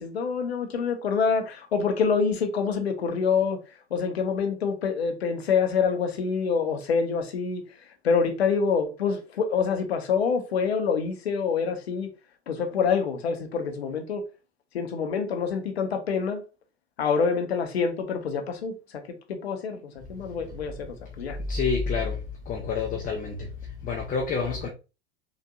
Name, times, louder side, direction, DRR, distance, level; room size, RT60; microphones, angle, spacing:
voice 1, 0.0-3.6 3.9-7.6 8.0-12.1 12.5-14.2 14.7-16.4 17.0-18.7 19.3-19.8 20.1-21.4, left 5 dB, 80° left, 0.8 m, -26 dB
voice 2, 21.5-24.7, left 5 dB, 25° left, 0.6 m, -28 dB
3.9 x 2.5 x 2.3 m
figure-of-eight pair, 85°, 31 cm